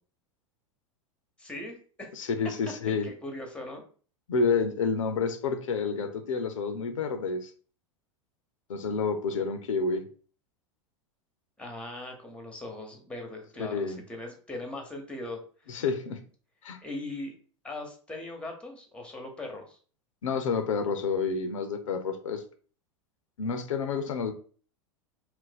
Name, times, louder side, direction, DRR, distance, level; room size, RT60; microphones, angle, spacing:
voice 1, 1.4-2.1 3.0-3.8 11.6-15.8 16.8-17.3 17.6-19.8, left 2 dB, 5° left, 3 dB, 0.8 m, -40 dB
voice 2, 2.1-3.1 4.3-7.5 8.7-10.1 13.7-14.0 15.7-16.2 16.6-16.8 20.2-22.4 23.4-24.3, left 5 dB, 85° left, 8 dB, 0.5 m, -29 dB
2.5 x 2.1 x 3.9 m, 0.42 s
hypercardioid pair, 95°, 16 cm